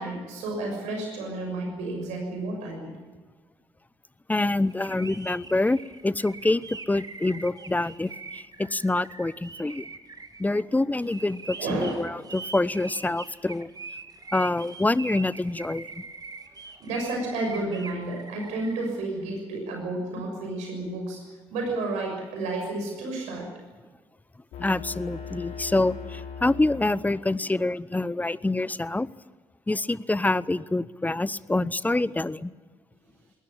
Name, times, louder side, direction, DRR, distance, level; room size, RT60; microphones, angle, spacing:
voice 1, 0.0-3.0 7.4-7.5 11.6-12.1 16.8-21.2 21.5-23.5, right 2 dB, 65° right, 2 dB, 6.3 m, -31 dB
voice 2, 4.3-9.9 10.4-13.7 14.3-15.9 24.6-29.1 29.7-32.5, left 2 dB, 15° left, 20 dB, 0.8 m, -26 dB
sound 1, 4.6-18.9, right 4 dB, 30° right, 2.3 m, -42 dB
sound 2, 24.5-27.5, left 6 dB, 60° left, 5.5 m, -39 dB
20.5 x 18.5 x 8.7 m, 1.3 s
figure-of-eight pair, 45°, 13 cm